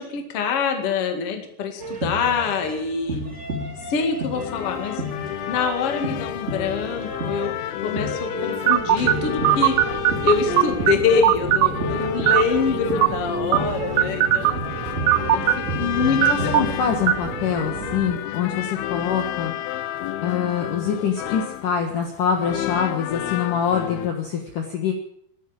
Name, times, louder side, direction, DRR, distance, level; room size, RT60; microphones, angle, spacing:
voice 1, 0.0-3.2 3.9-5.0 5.5-7.5 7.8-9.8 10.2-14.6 15.3-15.4 15.7-16.5, left 6 dB, 40° left, 5 dB, 2.2 m, -25 dB
sound 1, 1.8-16.9, right 1 dB, 20° right, 1.9 m, -32 dB
sound 2, 4.3-24.1, left 14 dB, 85° left, 2.2 m, -31 dB
sound 3, 8.7-18.2, right 13 dB, 85° right, 3.1 m, -22 dB
voice 2, 16.2-19.6 20.2-24.9, left 7 dB, 60° left, 3 dB, 2.5 m, -25 dB
13.5 x 12.0 x 8.7 m, 0.68 s
omnidirectional pair, 5.4 m